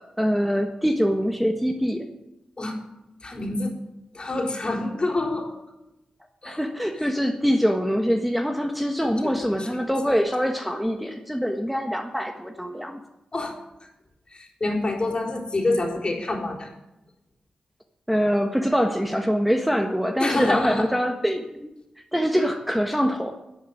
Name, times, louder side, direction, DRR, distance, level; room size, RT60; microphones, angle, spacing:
voice 1, 0.0-2.1 6.4-13.0 18.1-21.7 22.1-23.3, equal, ahead, 4 dB, 1.4 m, -24 dB
voice 2, 3.2-3.7 4.1-5.6 6.4-6.6 7.0-7.1 9.0-10.2 13.3-13.5 14.3-16.7 20.2-20.9, left 2 dB, 40° left, 1 dB, 3.9 m, -27 dB
11.0 x 8.2 x 9.2 m, 0.92 s
supercardioid pair, 45°, 2 cm